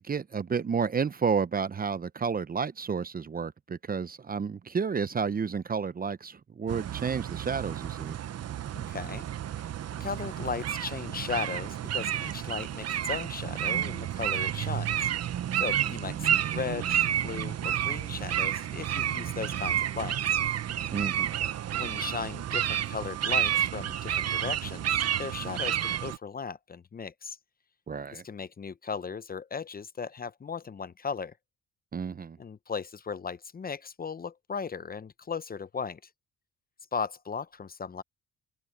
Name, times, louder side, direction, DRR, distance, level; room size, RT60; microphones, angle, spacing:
voice 1, 0.0-8.2 20.9-21.3 27.9-28.2 31.9-32.4, right 6 dB, 30° right, 0.7 m, -31 dB
sound 1, 6.7-26.2, right 10 dB, 55° right, 0.9 m, -30 dB
voice 2, 8.7-9.2 9.5-9.6 10.0-15.1 15.5-20.4 21.7-27.4 28.1-31.3 32.4-36.0 36.9-38.0, left 5 dB, 30° left, 0.7 m, -37 dB
cardioid pair, 90°, 30 cm